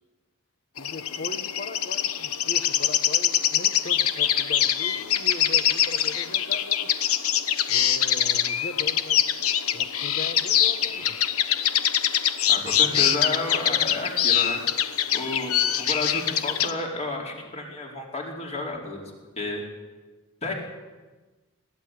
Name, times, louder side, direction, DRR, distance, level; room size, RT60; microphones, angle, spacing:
sound 1, 0.8-16.7, left 10 dB, 85° left, 1.1 m, -24 dB
voice 1, 0.8-6.9 7.7-9.2 9.7-11.2, left 2 dB, 50° left, 6 dB, 1.2 m, -39 dB
voice 2, 12.5-14.6 15.1-19.1 19.4-19.6 20.4-20.5, left 2 dB, 30° left, -1 dB, 4.6 m, -32 dB
21.0 x 15.5 x 9.4 m, 1.2 s
head